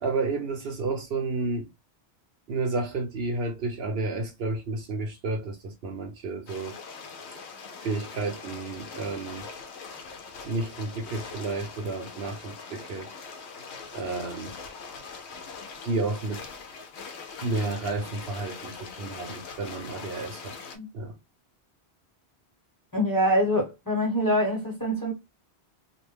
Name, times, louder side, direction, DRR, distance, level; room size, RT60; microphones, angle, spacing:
voice 1, 0.0-1.7 2.5-6.8 7.3-7.4 7.8-9.5 10.4-13.1 13.9-14.5 15.8-16.5 17.4-20.6 20.9-21.2, right 3 dB, 70° right, 0.8 m, -31 dB
sound 1, 6.5-20.8, left 5 dB, 80° left, 0.9 m, -42 dB
voice 2, 22.9-25.1, equal, 20° left, 1.0 m, -24 dB
2.4 x 2.1 x 3.2 m
omnidirectional pair, 1.1 m